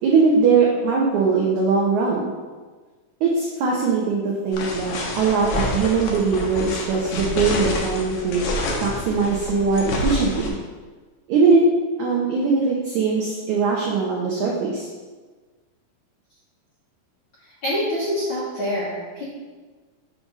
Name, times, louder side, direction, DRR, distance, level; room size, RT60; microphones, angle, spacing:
voice 1, 0.0-2.3 3.2-8.5 8.8-10.5 11.3-11.6 12.0-14.9, right 4 dB, 85° right, -2 dB, 1.7 m, -21 dB
sound 1, 4.5-10.5, left 1 dB, 80° left, 1.6 m, -28 dB
voice 2, 17.6-19.2, equal, 55° left, -10 dB, 1.4 m, -25 dB
7.6 x 3.6 x 5.4 m, 1.4 s
omnidirectional pair, 4.5 m